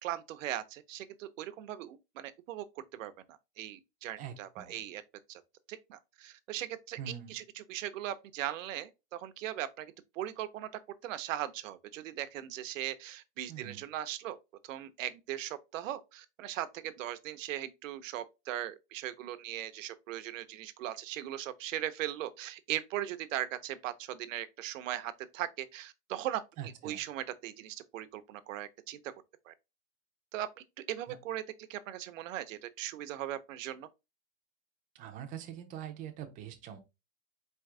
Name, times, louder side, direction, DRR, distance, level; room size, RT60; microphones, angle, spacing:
voice 1, 0.0-2.6 2.9-5.0 5.3-5.4 5.7-14.4 14.6-26.4 26.8-29.0 29.5-29.6 30.3-30.5 30.9-31.4 31.7-33.9, right 12 dB, 75° right, 0.8 m, -39 dB
voice 2, 4.2-4.8 7.0-7.4 13.5-13.9 26.6-27.0 31.1-31.2 34.9-36.8, right 9 dB, 20° right, 0.6 m, -44 dB
4.5 x 2.9 x 3.5 m
supercardioid pair, 160°, 40 cm